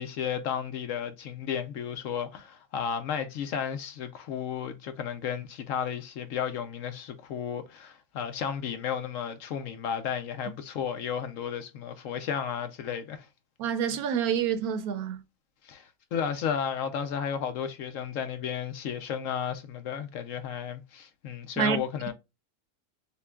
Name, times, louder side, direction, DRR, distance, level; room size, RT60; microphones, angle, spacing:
voice 1, 0.0-13.3 15.6-22.1, left 8 dB, 70° left, 0.9 m, -33 dB
voice 2, 13.6-15.2 21.6-21.8, right 8 dB, 80° right, 1.1 m, -27 dB
6.7 x 2.3 x 2.2 m
omnidirectional pair, 1.6 m